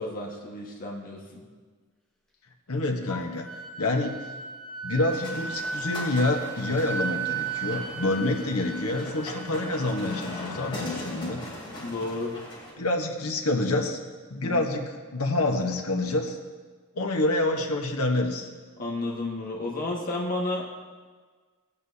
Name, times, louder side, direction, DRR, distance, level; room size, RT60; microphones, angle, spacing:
voice 1, 0.0-1.5 11.8-12.3 14.4-14.6 18.8-20.7, left 2 dB, 40° left, -2 dB, 1.7 m, -32 dB
voice 2, 2.7-3.5 3.8-4.2 4.8-11.4 12.8-14.0 14.3-16.4 16.9-18.5, left 2 dB, 85° left, 2 dB, 1.3 m, -27 dB
Wind instrument woodwind instrument, 3.1-10.8, right 5 dB, 5° left, 2.1 m, -36 dB
sound 1, 5.1-12.7, left 1 dB, 25° left, 3.4 m, -40 dB
18.0 x 8.8 x 2.9 m, 1.5 s
head